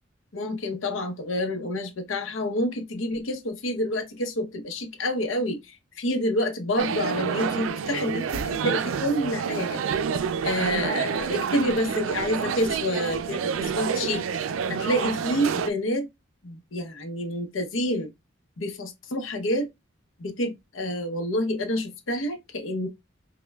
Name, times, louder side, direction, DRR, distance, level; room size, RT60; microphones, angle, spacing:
voice 1, 0.3-9.8 10.4-14.2 14.7-16.1 16.4-18.1 18.6-19.7 20.2-22.9, equal, 80° left, 0.8 m, -28 dB
sound 1, 6.8-15.7, right 6 dB, 85° right, 0.4 m, -28 dB
5.2 x 2.2 x 2.2 m
head